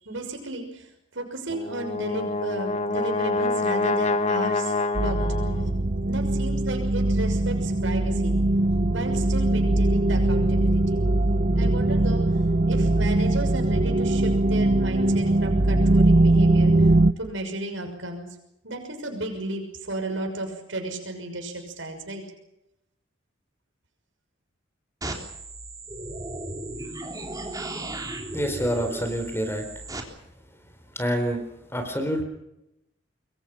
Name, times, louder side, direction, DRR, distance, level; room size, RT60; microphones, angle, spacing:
voice 1, 0.0-5.3 6.0-8.4 8.9-11.1 11.6-12.2 12.7-16.9 17.2-18.3 18.6-22.2, right 2 dB, 80° right, 3 dB, 6.2 m, -33 dB
Brass instrument, 1.5-5.8, left 3 dB, 35° left, 1.3 m, -26 dB
sound 1, 4.9-17.1, right 2 dB, 40° right, 0.9 m, -21 dB
sound 2, 25.0-30.0, right 2 dB, 20° right, 3.4 m, -35 dB
voice 2, 28.3-29.6 31.0-31.4 31.7-32.2, equal, 15° left, 6 dB, 4.2 m, -27 dB
26.0 x 23.5 x 6.1 m, 0.83 s
head